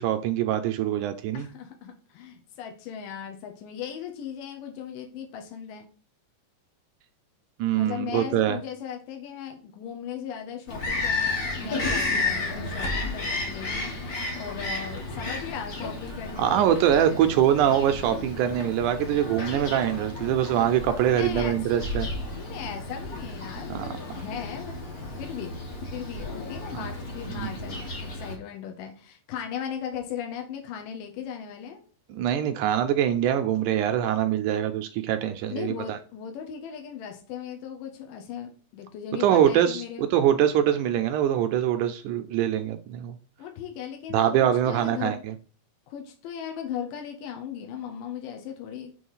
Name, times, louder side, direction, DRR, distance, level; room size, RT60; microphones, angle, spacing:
voice 1, 0.0-1.5 7.6-8.6 16.4-22.1 23.7-23.9 26.7-26.8 32.1-36.0 39.2-43.2 44.1-45.3, right 10 dB, 80° right, 8 dB, 1.8 m, -24 dB
voice 2, 1.3-5.9 7.7-13.9 14.3-17.4 21.0-21.6 22.3-24.8 25.1-25.6 25.9-31.8 35.5-40.1 43.4-45.3 45.9-48.9, left 8 dB, 85° left, 3 dB, 2.5 m, -37 dB
Bird vocalization bird call bird song, 10.7-28.4, left 2 dB, 55° left, 1.0 m, -33 dB
6.3 x 3.1 x 5.5 m, 0.40 s
omnidirectional pair, 3.8 m